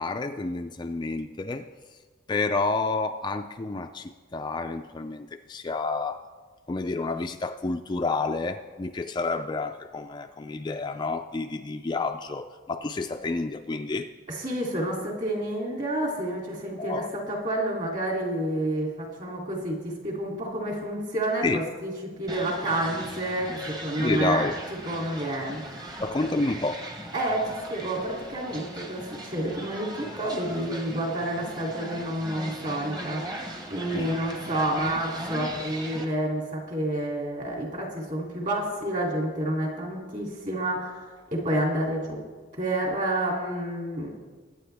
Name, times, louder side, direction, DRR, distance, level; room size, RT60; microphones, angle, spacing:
voice 1, 0.0-1.7 2.3-6.2 6.7-14.1 16.8-17.1 21.4-21.6 24.0-24.5 26.0-26.8 33.9-34.2, left 3 dB, 20° left, 6 dB, 0.3 m, -29 dB
voice 2, 14.3-24.5 24.9-26.0 27.1-33.2 33.7-42.2 42.6-44.1, right 1 dB, 40° right, -1 dB, 2.8 m, -29 dB
sound 1, 22.3-36.1, right 1 dB, 20° right, 1.1 m, -39 dB
21.5 x 9.3 x 3.4 m, 1.4 s
head